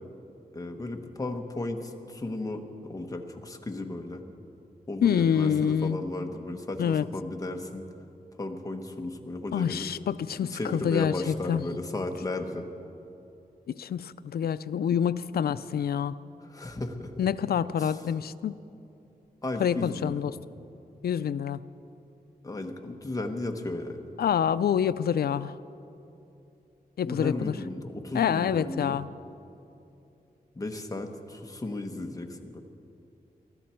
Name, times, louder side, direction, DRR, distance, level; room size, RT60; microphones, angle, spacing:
voice 1, 0.5-4.2 4.9-7.8 8.4-9.9 10.5-12.7 16.4-17.1 17.8-18.1 19.4-20.2 22.4-24.1 27.0-29.0 30.5-32.6, left 2 dB, 20° left, 4 dB, 1.1 m, -35 dB
voice 2, 5.0-6.0 6.8-7.1 9.5-11.6 13.7-16.1 17.2-18.5 19.6-20.3 21.0-21.6 24.2-25.6 27.0-27.5 28.1-29.1, left 8 dB, 75° left, 14 dB, 0.4 m, -27 dB
23.0 x 12.5 x 4.5 m, 2.8 s
wide cardioid pair, 155°, 16 cm